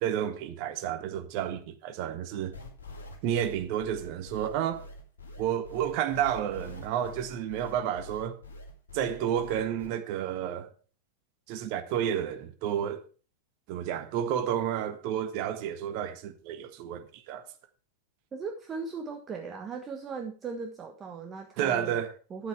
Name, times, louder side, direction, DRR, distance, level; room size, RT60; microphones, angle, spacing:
voice 1, 0.0-2.5 3.2-4.8 5.4-8.4 8.9-10.7 11.5-13.0 13.7-17.4 21.6-22.1, right 10 dB, 45° right, 1.5 m, -31 dB
sound 1, 2.5-9.9, left 2 dB, 70° left, 3.4 m, -45 dB
voice 2, 18.3-22.0 22.3-22.5, right 5 dB, 25° right, 1.3 m, -38 dB
11.5 x 8.0 x 4.7 m
figure-of-eight pair, 90°, 0 cm